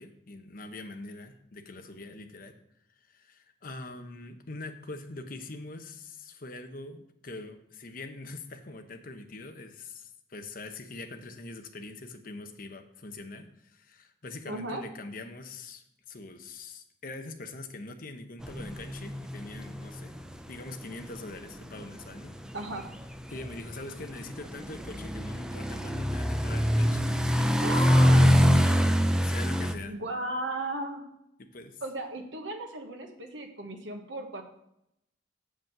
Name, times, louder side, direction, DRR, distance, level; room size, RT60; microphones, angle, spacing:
voice 1, 0.0-2.5 3.1-22.3 23.3-27.8 28.1-28.8 29.2-29.9 31.4-31.8, left 2 dB, 50° left, 6 dB, 0.9 m, -43 dB
voice 2, 14.5-14.8 22.5-22.9 27.6-28.2 29.8-31.0 31.8-34.4, right 1 dB, 90° right, 4 dB, 1.3 m, -35 dB
sound 1, 18.4-29.7, equal, 5° right, 0.4 m, -25 dB
7.5 x 5.1 x 6.6 m, 0.78 s
head